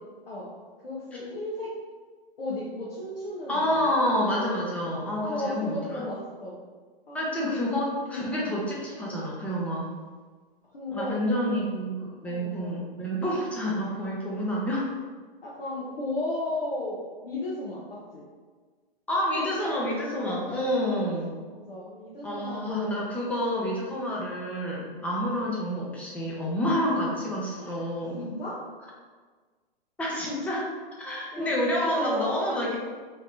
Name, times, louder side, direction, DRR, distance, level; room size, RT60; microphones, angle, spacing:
voice 1, 0.8-1.7 2.4-3.9 5.2-6.6 7.1-7.2 7.5-7.6 8.1-8.4 10.7-11.2 12.2-12.9 15.4-18.2 21.5-23.0 27.5-28.6 31.3-32.6, left 2 dB, 75° left, -7 dB, 1.0 m, -34 dB
voice 2, 3.5-6.0 7.1-9.9 10.9-14.8 19.1-21.3 22.2-28.2 30.0-30.7 31.0-32.8, equal, 5° left, -4 dB, 0.5 m, -28 dB
3.3 x 2.7 x 3.7 m, 1.5 s
hypercardioid pair, 125°, 29 cm